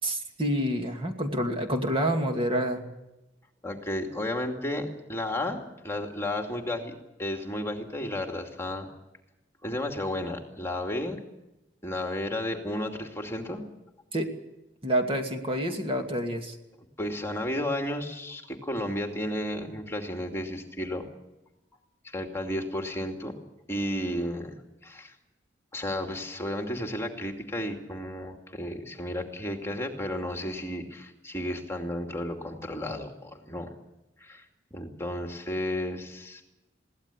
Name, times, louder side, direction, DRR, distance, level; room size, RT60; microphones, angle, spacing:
voice 1, 0.0-2.8 14.1-14.3 14.8-16.6, right 1 dB, 30° right, 3 dB, 2.4 m, -28 dB
voice 2, 3.6-8.9 9.6-11.2 11.8-13.6 17.0-21.1 22.0-23.3 23.7-25.1 25.7-33.7 34.2-34.5 34.7-36.4, left 1 dB, 15° left, 3 dB, 2.5 m, -33 dB
22.5 x 17.0 x 8.4 m, 0.95 s
head